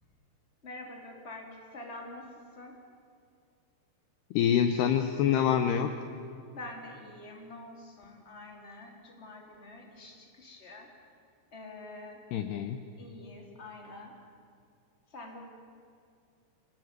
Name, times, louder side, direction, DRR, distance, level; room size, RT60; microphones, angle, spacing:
voice 1, 0.6-2.3 2.5-2.8 6.5-10.9 11.5-12.2 13.0-14.2 15.1-15.4, left 2 dB, 15° left, 1 dB, 2.7 m, -46 dB
voice 2, 4.3-5.9 12.3-12.8, left 9 dB, 85° left, 7 dB, 2.3 m, -26 dB
25.5 x 18.5 x 9.7 m, 2.3 s
omnidirectional pair, 5.9 m